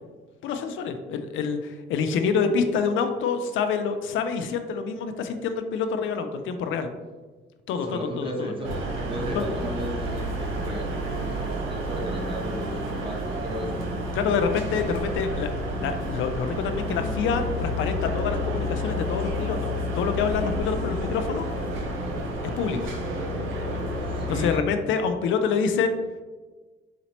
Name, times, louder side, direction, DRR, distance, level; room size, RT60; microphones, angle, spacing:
voice 1, 0.4-6.9 7.7-8.5 9.3-9.4 14.1-15.5 15.8-21.5 22.6-22.9 24.3-26.0, left 5 dB, 80° left, 7 dB, 0.4 m, -27 dB
voice 2, 7.8-13.7 24.1-24.7, equal, 25° right, -2 dB, 1.1 m, -34 dB
sound 1, 8.6-24.6, equal, 80° right, 0.6 m, -30 dB
4.1 x 2.8 x 2.9 m, 1.3 s
cardioid pair, 90°, 20 cm